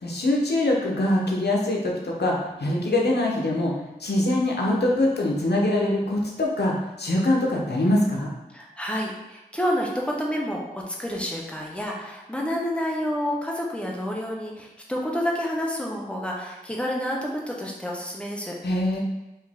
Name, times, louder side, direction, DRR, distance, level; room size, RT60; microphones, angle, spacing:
voice 1, 0.0-3.7 4.0-8.3 18.6-19.0, left 1 dB, 85° left, -2 dB, 0.9 m, -23 dB
voice 2, 8.5-18.5, equal, 5° left, -2 dB, 1.0 m, -29 dB
4.6 x 2.9 x 3.6 m, 0.99 s
wide cardioid pair, 55°, 17 cm